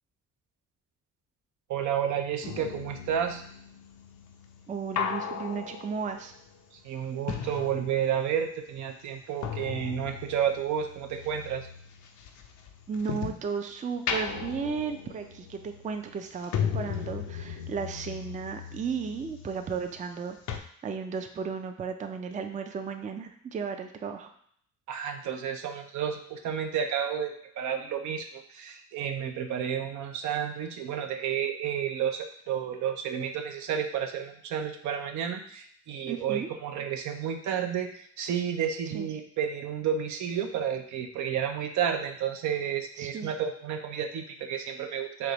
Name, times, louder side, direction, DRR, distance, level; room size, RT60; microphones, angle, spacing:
voice 1, 1.7-3.4 6.8-11.7 24.9-45.3, right 8 dB, 75° right, 5 dB, 0.6 m, -31 dB
sound 1, 2.4-8.4 8.7-13.5 13.9-20.2 20.5-20.6, left 7 dB, 75° left, 0.5 m, -37 dB
voice 2, 4.7-6.3 12.9-24.3 36.1-36.5 38.9-39.1 43.0-43.3, right 6 dB, 25° right, 6 dB, 0.4 m, -34 dB
3.4 x 2.8 x 3.9 m, 0.63 s
cardioid pair, 90°, 30 cm